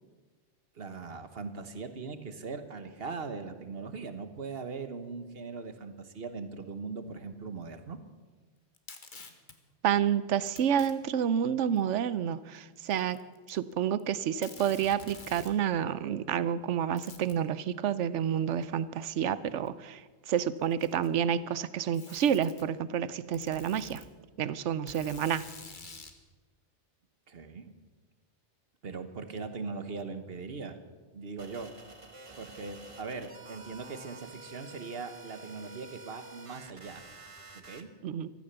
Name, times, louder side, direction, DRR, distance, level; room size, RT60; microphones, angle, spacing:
voice 1, 0.7-8.0 27.3-27.7 28.8-30.8 31.1-31.7 32.3-37.0 37.5-37.9, right 4 dB, 55° right, 10 dB, 1.4 m, -40 dB
Packing tape duct tape, 8.7-9.6 10.5-10.9 11.8-11.9 12.9-13.7 14.0-14.1 14.4-15.6 17.0-17.4 18.6-18.7 19.7-19.8 20.6-21.2 21.9-22.7 23.3-24.1 24.9-26.2, left 4 dB, 45° left, 1.5 m, -48 dB
voice 2, 9.8-13.2 13.5-24.0 24.4-25.5 38.0-38.3, right 9 dB, 85° right, 16 dB, 1.0 m, -29 dB
sound 1, 31.4-37.8, right 3 dB, 30° right, 1.1 m, -49 dB
15.5 x 13.5 x 6.9 m, 1.3 s
omnidirectional pair, 1.2 m